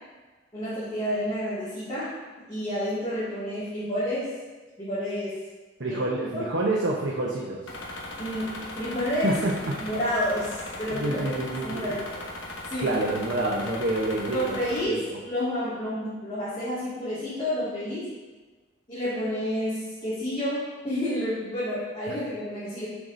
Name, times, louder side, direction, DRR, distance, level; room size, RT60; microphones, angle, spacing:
voice 1, 0.5-2.2 2.5-4.3 4.8-5.3 5.9-6.0 6.3-6.4 8.2-9.3 9.8-12.0 12.7-12.9 14.3-18.1 18.9-22.9, equal, 25° left, -13 dB, 2.1 m, -30 dB
voice 2, 5.8-7.6 9.2-9.7 10.9-12.0 12.8-15.2 22.1-22.2, right 2 dB, 75° right, -4 dB, 0.9 m, -28 dB
sound 1, 7.7-14.8, left 2 dB, 90° left, 1.1 m, -38 dB
11.0 x 4.8 x 2.7 m, 1.3 s
head